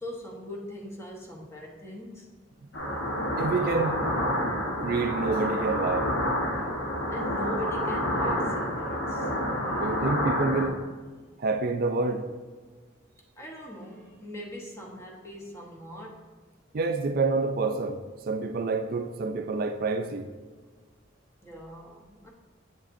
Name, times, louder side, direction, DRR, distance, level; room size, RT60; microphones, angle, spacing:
voice 1, 0.0-2.3 7.1-9.9 13.4-16.3 21.4-22.3, left 1 dB, 15° left, 1.0 m, -41 dB
sound 1, 2.7-10.7, equal, 70° left, 1.2 m, -28 dB
voice 2, 3.4-4.2 4.8-6.1 9.7-10.8 11.4-12.3 16.7-20.3, right 3 dB, 50° right, 0.4 m, -28 dB
7.9 x 7.3 x 2.6 m
head